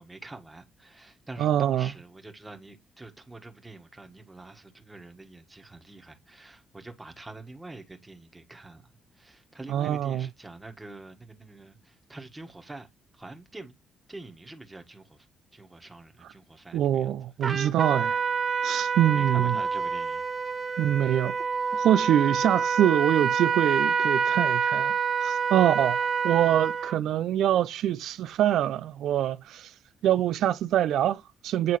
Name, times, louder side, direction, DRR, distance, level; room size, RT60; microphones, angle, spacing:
voice 1, 0.0-8.8 9.2-12.9 13.1-13.7 14.1-15.3 15.5-17.1 19.0-20.3, right 2 dB, 15° right, 1.5 m, -45 dB
voice 2, 1.4-1.9 9.7-10.3 16.7-18.2 18.6-19.6 20.8-21.4 21.8-24.9 25.2-29.7 30.0-31.8, right 11 dB, 80° right, 0.3 m, -24 dB
Trumpet, 17.4-27.0, right 6 dB, 40° right, 1.2 m, -27 dB
9.1 x 3.7 x 3.1 m
cardioid pair, 90°, 0 cm